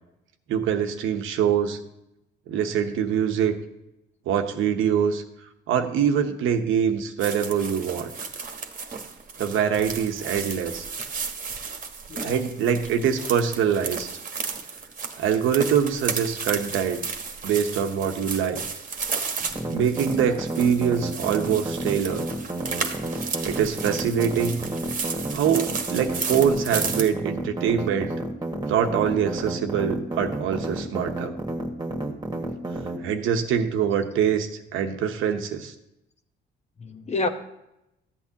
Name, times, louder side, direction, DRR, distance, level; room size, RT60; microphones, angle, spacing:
voice 1, 0.5-1.8 2.5-3.5 4.3-5.2 5.7-8.1 9.4-10.9 12.2-14.1 15.2-17.0 17.4-18.6 19.7-22.3 23.4-24.6 25.3-28.1 28.7-31.4 33.0-35.7, right 8 dB, 90° right, 1.0 m, -24 dB
sound 1, 7.2-27.1, right 5 dB, 40° right, 1.2 m, -33 dB
voice 2, 12.1-12.4 19.5-19.8 36.8-37.3, left 3 dB, 35° left, 0.9 m, -30 dB
sound 2, 19.5-33.0, right 2 dB, 20° right, 1.6 m, -30 dB
14.0 x 8.3 x 2.8 m
cardioid pair, 90°, 20 cm